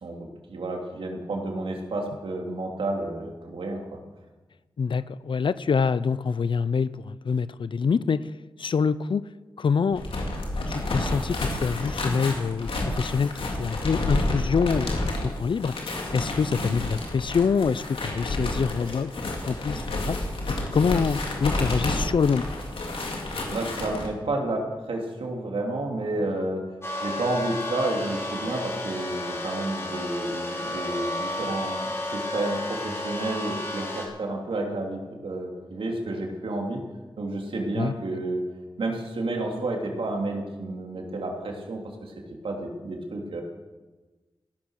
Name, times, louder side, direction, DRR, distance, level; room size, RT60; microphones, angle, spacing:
voice 1, 0.0-4.0 16.5-16.7 23.5-26.6 27.0-36.8 37.2-38.4 38.8-42.1 42.4-43.4, right 2 dB, 90° right, 1 dB, 3.0 m, -31 dB
voice 2, 4.8-8.3 8.6-9.2 9.6-10.0 10.7-15.9 16.1-20.2 20.7-22.4 37.8-37.9, left 5 dB, 70° left, 16 dB, 0.5 m, -25 dB
sound 1, 9.9-24.1, left 1 dB, 90° left, 3.0 m, -30 dB
sound 2, 26.8-34.1, left 1 dB, 30° left, 6.1 m, -32 dB
16.5 x 12.0 x 6.5 m, 1.2 s
wide cardioid pair, 75°, 9 cm